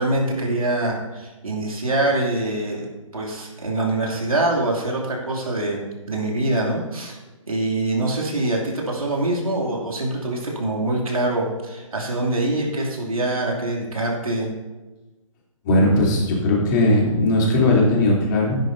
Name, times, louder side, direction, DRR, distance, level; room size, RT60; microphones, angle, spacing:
voice 1, 0.0-2.9 3.1-5.8 6.1-7.2 7.5-14.5, right 2 dB, 85° right, -2 dB, 2.8 m, -24 dB
voice 2, 15.6-18.6, left 1 dB, 35° left, -4 dB, 3.3 m, -18 dB
13.0 x 10.5 x 2.8 m, 1.2 s
figure-of-eight pair, 140°, 18 cm